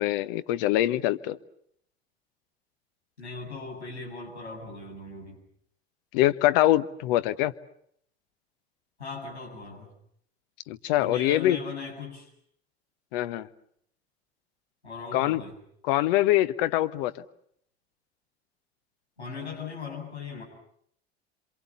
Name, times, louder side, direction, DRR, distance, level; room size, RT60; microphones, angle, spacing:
voice 1, 0.0-1.4 6.1-7.5 10.7-11.6 13.1-13.5 15.1-15.4 15.8-17.1, left 15 dB, 55° left, 13 dB, 1.2 m, -24 dB
voice 2, 3.2-5.4 9.0-9.9 11.0-12.3 14.8-15.5 19.2-20.4, left 4 dB, 85° left, -3 dB, 7.8 m, -38 dB
28.0 x 26.0 x 7.0 m, 0.68 s
figure-of-eight pair, 70°, 32 cm